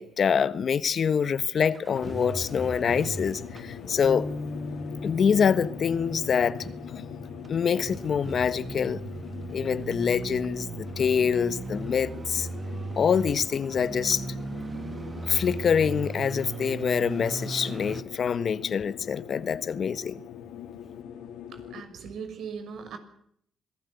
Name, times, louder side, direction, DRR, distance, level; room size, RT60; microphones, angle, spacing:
voice 1, 0.0-4.3 5.0-6.6 7.5-9.0 9.5-12.5 13.0-14.3 15.2-20.2, left 7 dB, 50° left, 1.3 m, -25 dB
sound 1, 1.6-18.0, right 3 dB, 30° right, 1.3 m, -38 dB
sound 2, 1.9-21.8, left 9 dB, 90° left, 2.7 m, -42 dB
Bass guitar, 4.0-10.3, left 2 dB, 15° left, 1.0 m, -40 dB
voice 2, 21.4-23.0, right 6 dB, 70° right, 6.5 m, -39 dB
27.0 x 19.0 x 8.2 m
cardioid pair, 90°, 0 cm